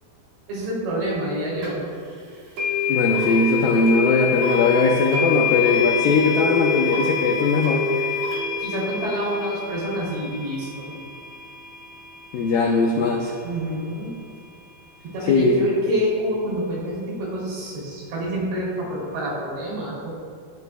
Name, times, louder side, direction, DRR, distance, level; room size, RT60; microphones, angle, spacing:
voice 1, 0.5-1.9 8.6-10.9 13.4-14.1 15.0-20.2, equal, 75° right, -5 dB, 5.4 m, -27 dB
sound 1, 1.6-1.7 2.6-13.5, left 6 dB, 50° right, 3.2 m, -27 dB
voice 2, 2.9-7.8 12.3-13.3 15.3-15.7, left 3 dB, 90° left, -1 dB, 2.0 m, -19 dB
16.0 x 10.5 x 2.3 m, 2.1 s
omnidirectional pair, 5.2 m